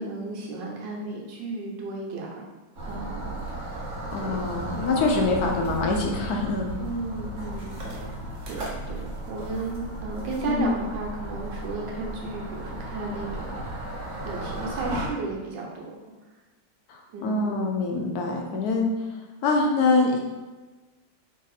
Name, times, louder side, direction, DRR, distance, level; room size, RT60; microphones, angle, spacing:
voice 1, 0.0-2.5 2.8-3.9 4.2-4.4 4.7-4.9 6.8-8.1 8.5-13.5 14.2-15.9 17.1-17.6, right 3 dB, 80° right, -1 dB, 1.4 m, -34 dB
sound 1, 2.8-15.1, right 1 dB, 55° right, 0.9 m, -35 dB
voice 2, 4.1-6.7 10.5-10.7 16.9-18.9 19.4-20.2, left 3 dB, 70° left, 1 dB, 0.9 m, -24 dB
3.4 x 2.7 x 3.9 m, 1.2 s
omnidirectional pair, 2.0 m